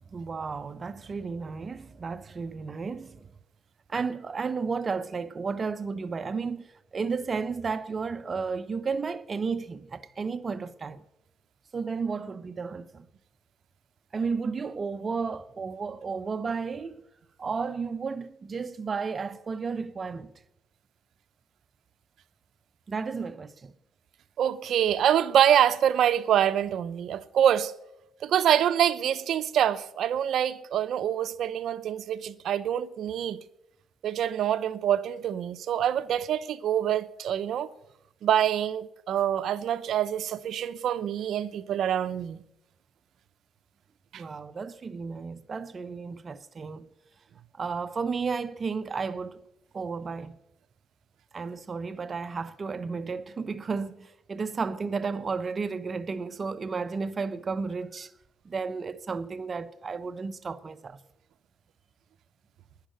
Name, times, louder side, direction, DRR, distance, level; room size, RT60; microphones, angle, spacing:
voice 1, 0.1-3.3 3.9-11.0 11.7-13.1 14.1-17.0 17.4-20.3 22.9-23.7 44.1-46.9 47.5-49.4 49.7-50.4 51.3-58.1 58.4-61.0, right 5 dB, 40° right, 0.8 m, -33 dB
voice 2, 24.4-27.7 28.2-33.4 34.0-37.7 38.2-42.4 44.1-44.2, right 10 dB, 70° right, 0.7 m, -25 dB
11.5 x 10.0 x 8.8 m
cardioid pair, 90°, 0 cm